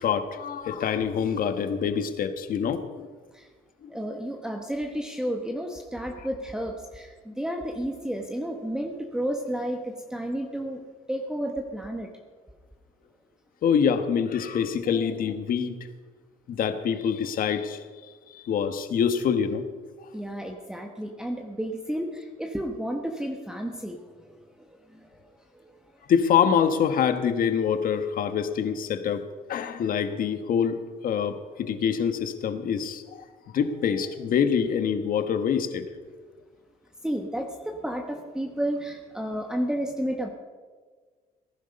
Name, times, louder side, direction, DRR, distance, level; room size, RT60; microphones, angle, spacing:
voice 1, 0.0-3.1 3.8-3.9 13.6-15.7 16.5-17.8 18.3-19.6 26.1-29.2 29.5-30.8 31.0-33.2 33.5-35.8, left 7 dB, 55° left, 9 dB, 1.4 m, -25 dB
voice 2, 3.9-10.8 11.1-12.1 20.1-25.3 25.5-26.0 37.0-40.3, equal, 5° right, 3 dB, 1.3 m, -32 dB
18.5 x 11.0 x 5.4 m, 1.5 s
cardioid pair, 110°, 17 cm